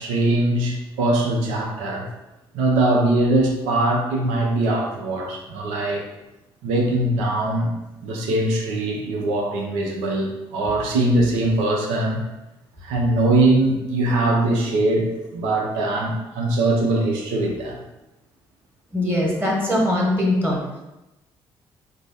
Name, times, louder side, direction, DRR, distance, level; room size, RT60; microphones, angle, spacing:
voice 1, 0.0-2.1 2.5-6.1 6.6-7.7 8.0-12.2 12.8-17.8, right 2 dB, 80° right, 1 dB, 0.6 m, -21 dB
voice 2, 18.9-20.6, left 1 dB, 15° right, -3 dB, 1.4 m, -21 dB
3.3 x 2.1 x 3.9 m, 0.98 s
hypercardioid pair, 50°, 12 cm